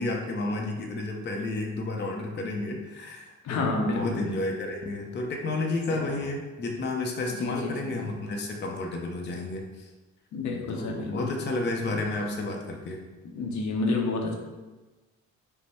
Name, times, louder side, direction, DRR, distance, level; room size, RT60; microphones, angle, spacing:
voice 1, 0.0-9.9 10.7-13.0, left 2 dB, 35° left, 1 dB, 0.7 m, -31 dB
voice 2, 3.4-4.3 5.9-6.0 7.3-8.0 10.3-11.3 11.9-12.0 13.3-14.4, left 3 dB, 70° left, 1 dB, 0.8 m, -30 dB
5.3 x 2.1 x 4.2 m, 1.2 s
cardioid pair, 90°, 30 cm